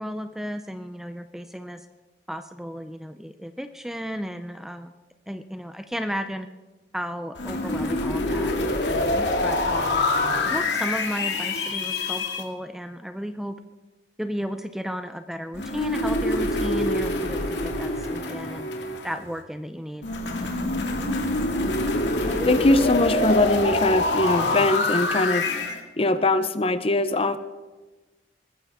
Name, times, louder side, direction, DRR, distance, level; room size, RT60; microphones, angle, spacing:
voice 1, 0.0-1.9 2.3-4.9 5.3-6.5 6.9-8.5 8.9-10.0 10.4-13.6 14.2-18.7 19.0-20.1, equal, ahead, 9 dB, 0.5 m, -34 dB
sound 1, 7.4-12.4 15.5-19.3 20.0-25.8, left 2 dB, 80° left, 2.1 m, -25 dB
voice 2, 22.2-25.5 26.0-27.4, left 2 dB, 35° left, 12 dB, 0.7 m, -22 dB
20.5 x 14.5 x 3.6 m, 1.2 s
head